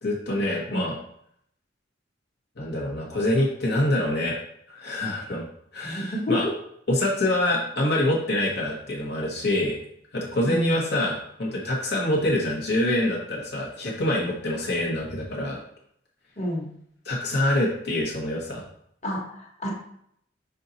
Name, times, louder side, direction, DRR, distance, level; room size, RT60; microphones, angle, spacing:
voice 1, 0.0-0.9 2.6-4.4 4.7-5.4 5.7-6.5 6.9-9.8 10.1-15.6 17.0-18.6, left 1 dB, 60° left, -4 dB, 1.3 m, -25 dB
voice 2, 5.8-6.3 10.4-10.8 16.4-16.7 19.0-19.7, left 1 dB, 40° left, -3 dB, 1.5 m, -29 dB
5.8 x 4.0 x 4.1 m, 0.70 s
head